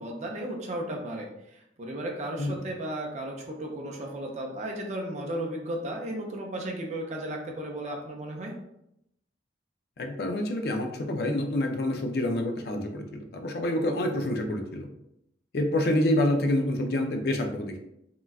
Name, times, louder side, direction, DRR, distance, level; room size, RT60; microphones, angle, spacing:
voice 1, 0.0-8.5, right 1 dB, 40° right, 0 dB, 0.5 m, -35 dB
voice 2, 10.0-14.9 15.5-17.8, left 1 dB, 60° left, 4 dB, 0.4 m, -27 dB
3.7 x 2.2 x 2.3 m, 0.81 s
head